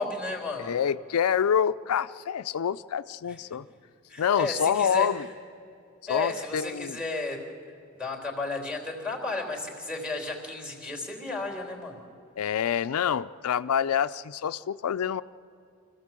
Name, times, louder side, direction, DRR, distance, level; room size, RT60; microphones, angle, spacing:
voice 1, 0.0-0.7 3.2-3.4 4.1-5.1 6.1-7.4 7.9-12.0, left 3 dB, 5° right, 1 dB, 3.4 m, -33 dB
voice 2, 0.6-3.6 4.2-5.3 6.1-7.0 12.4-15.2, left 8 dB, 85° left, 13 dB, 0.4 m, -27 dB
25.5 x 15.0 x 7.5 m, 2.6 s
head